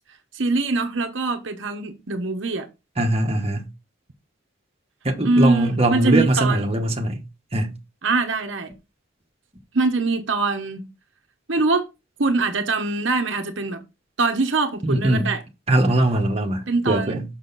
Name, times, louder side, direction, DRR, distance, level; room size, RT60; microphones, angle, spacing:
voice 1, 0.3-2.7 5.2-6.8 8.0-8.7 9.7-10.9 11.5-11.9 12.2-13.8 14.2-15.4 16.7-17.2, right 3 dB, 65° right, 1.0 m, -23 dB
voice 2, 3.0-3.6 5.0-7.2 7.5-7.7 14.8-15.3 15.7-17.2, right 1 dB, 30° right, 1.2 m, -21 dB
6.3 x 6.3 x 4.0 m
head